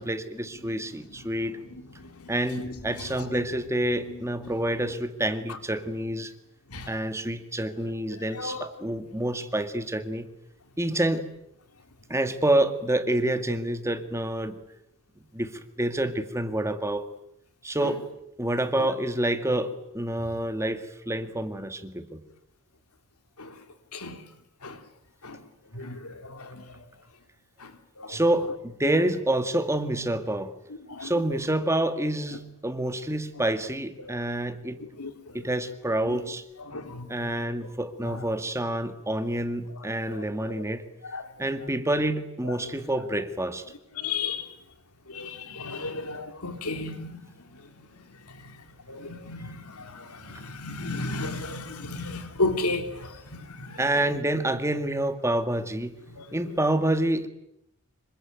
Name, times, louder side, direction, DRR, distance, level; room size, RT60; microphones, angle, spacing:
voice 1, 0.0-1.6 2.3-6.3 6.9-10.3 10.8-11.3 12.1-14.5 15.3-17.1 17.6-18.0 18.4-22.2 28.1-30.5 31.0-34.8 35.3-36.4 37.1-40.8 41.4-43.6 53.8-56.0 56.3-57.3, right 1 dB, 15° right, 1.9 m, -28 dB
voice 2, 2.0-3.4 4.4-4.5 6.7-6.9 8.3-8.7 23.4-23.5 23.9-24.2 24.6-24.8 25.2-25.4 25.7-26.6 27.6-27.7 28.0-28.2 30.9-31.1 34.0-34.2 35.0-35.1 36.0-36.2 36.7-37.3 38.1-38.2 39.8-40.6 41.1-41.2 44.0-44.5 45.1-47.2 48.9-53.8 54.1-54.2 56.1-56.2, left 3 dB, 85° left, 3.3 m, -34 dB
27.0 x 24.0 x 9.2 m
head